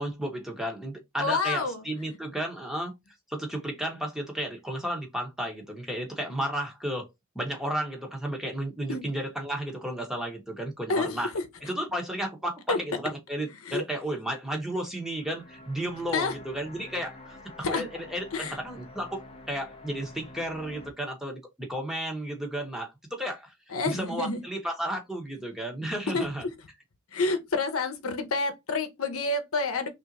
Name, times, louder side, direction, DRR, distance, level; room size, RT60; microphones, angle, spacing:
voice 1, 0.0-2.9 3.3-7.1 7.3-11.3 11.6-23.5 23.8-26.4, right 1 dB, ahead, 0.9 m, -33 dB
voice 2, 1.2-2.1 8.9-9.0 10.9-11.4 12.7-12.8 13.6-13.8 16.1-16.3 17.6-17.8 18.3-18.6 23.7-24.4 26.1-26.3 27.1-29.9, left 3 dB, 75° left, 0.8 m, -28 dB
sound 1, 14.8-20.9, left 2 dB, 25° left, 0.6 m, -48 dB
3.4 x 2.6 x 4.0 m
head